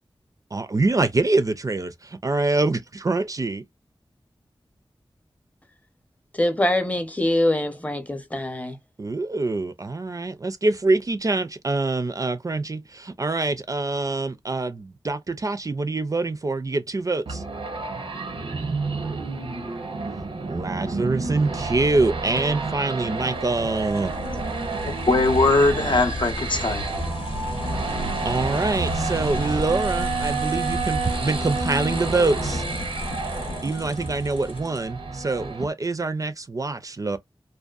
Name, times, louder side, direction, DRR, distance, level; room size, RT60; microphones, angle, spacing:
voice 1, 0.5-3.6 9.0-17.4 20.5-24.1 28.2-32.6 33.6-37.2, right 3 dB, 40° right, 0.4 m, -25 dB
voice 2, 6.4-8.8, left 1 dB, 15° left, 0.6 m, -23 dB
sound 1, 17.3-35.6, right 3 dB, 90° right, 0.7 m, -30 dB
sound 2, 22.4-35.1, left 1 dB, 85° left, 0.8 m, -33 dB
voice 3, 24.9-26.9, left 2 dB, 65° left, 0.6 m, -20 dB
2.6 x 2.2 x 2.3 m
wide cardioid pair, 70°, 9 cm